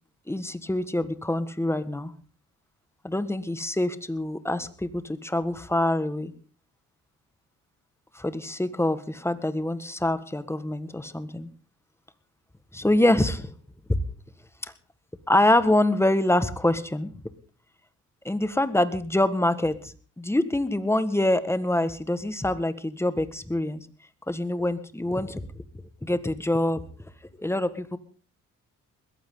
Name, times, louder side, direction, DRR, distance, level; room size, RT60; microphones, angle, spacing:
voice 1, 0.3-2.1 3.0-6.3 8.1-11.5 12.7-13.5 13.9-14.0 15.3-17.1 18.2-23.9 24.3-25.6 26.0-27.1 27.4-28.0, left 1 dB, 10° left, 13 dB, 1.6 m, -25 dB
21.0 x 15.0 x 3.9 m, 0.40 s
cardioid pair, 90°, 30 cm